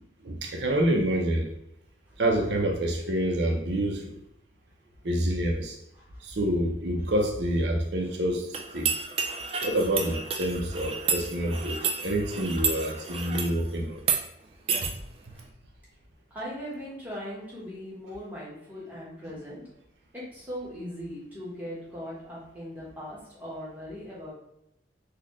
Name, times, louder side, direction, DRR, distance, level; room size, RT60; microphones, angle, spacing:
voice 1, 0.2-1.5 2.2-4.1 5.0-5.8 6.2-8.9 9.6-14.1 14.8-14.9 15.3-15.4, right 1 dB, 65° right, 2 dB, 0.7 m, -27 dB
sound 1, 8.5-13.6 14.0-14.2 14.7-14.9, right 6 dB, 30° right, 0.3 m, -30 dB
voice 2, 16.3-19.6 20.1-24.3, equal, 10° right, -7 dB, 1.3 m, -39 dB
4.1 x 2.4 x 3.1 m, 0.83 s
head